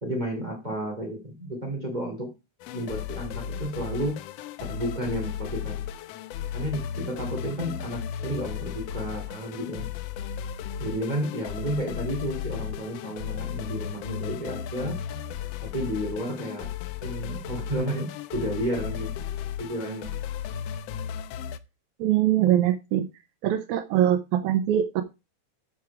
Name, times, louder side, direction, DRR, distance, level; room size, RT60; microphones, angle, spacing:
voice 1, 0.0-2.3 2.7-4.2 4.7-5.8 6.5-9.9 10.8-15.0 15.6-16.7 17.0-19.1 19.6-20.1, right 1 dB, 15° right, 3 dB, 2.5 m, -32 dB
sound 1, 2.6-21.6, left 8 dB, 75° left, 1.5 m, -35 dB
voice 2, 22.0-23.1 23.4-25.0, right 11 dB, 85° right, 9 dB, 2.1 m, -22 dB
12.5 x 4.8 x 4.7 m, 0.27 s
omnidirectional pair, 3.4 m